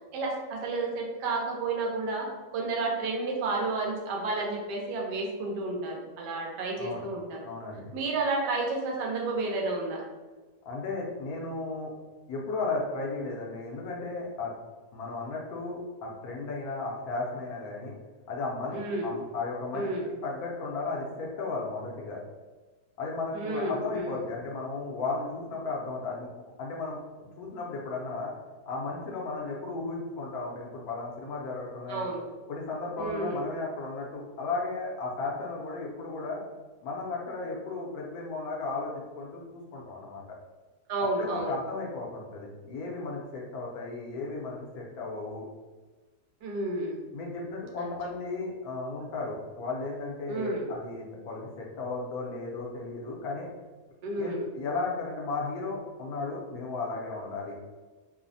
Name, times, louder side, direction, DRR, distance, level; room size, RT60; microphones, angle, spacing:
voice 1, 0.1-7.4 7.9-10.0 18.7-19.1 19.7-20.1 23.3-24.2 31.9-32.2 33.0-33.4 40.9-41.5 46.4-47.0 47.8-48.0 50.3-50.7 54.0-54.5, right 2 dB, 85° right, -1 dB, 1.2 m, -31 dB
voice 2, 7.4-7.8 10.7-11.9 12.3-14.5 14.9-18.0 18.3-19.9 20.2-22.2 23.0-26.3 26.6-28.3 28.7-32.1 32.5-36.4 36.8-40.2 41.2-45.5 47.1-53.5 54.2-57.6, left 3 dB, 70° left, -2 dB, 1.0 m, -35 dB
3.1 x 2.0 x 2.5 m, 1.3 s
omnidirectional pair, 1.7 m